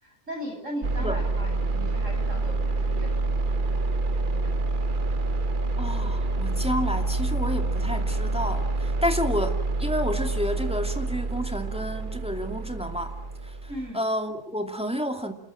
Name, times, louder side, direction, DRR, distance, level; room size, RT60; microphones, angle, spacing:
voice 1, 0.0-3.5 4.3-4.6 13.7-14.0, equal, 55° right, 3 dB, 8.6 m, -38 dB
sound 1, 0.8-13.9, right 3 dB, 35° right, 1.1 m, -27 dB
voice 2, 5.8-13.1 13.9-15.3, equal, 5° right, 4 dB, 2.5 m, -30 dB
28.5 x 21.0 x 7.6 m, 0.74 s
omnidirectional pair, 1.6 m